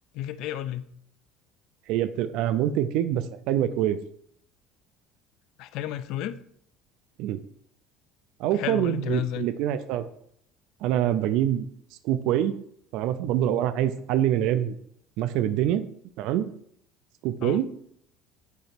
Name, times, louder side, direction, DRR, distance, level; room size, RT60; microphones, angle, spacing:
voice 1, 0.1-0.9 5.6-6.4 8.5-9.5 17.4-17.6, left 12 dB, 65° left, 13 dB, 0.4 m, -32 dB
voice 2, 1.9-4.0 7.2-7.4 8.4-10.0 10.8-11.7 12.0-12.6 12.9-14.7 15.2-15.8 16.2-16.5 17.2-17.7, right 11 dB, 70° right, 11 dB, 0.4 m, -25 dB
8.1 x 2.9 x 4.4 m, 0.68 s
cardioid pair, 135°, 0 cm